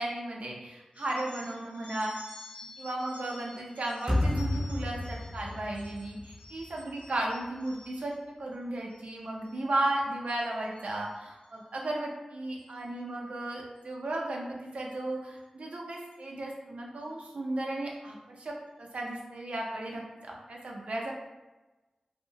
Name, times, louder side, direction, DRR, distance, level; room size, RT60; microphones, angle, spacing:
voice 1, 0.0-2.1 2.8-8.1 8.4-21.1, right 1 dB, 75° right, -1 dB, 0.5 m, -35 dB
sound 1, 0.9-8.2 8.7-9.1 9.4-9.9 10.3-11.6 12.6-12.8 13.8-13.9 14.9-15.0 15.4-15.5 16.0-16.3, left 2 dB, 75° left, 0.7 m, -52 dB
sound 2, 4.1-7.2, left 1 dB, 5° right, 0.6 m, -32 dB
2.6 x 2.0 x 2.7 m, 1.1 s
wide cardioid pair, 60°, 2 cm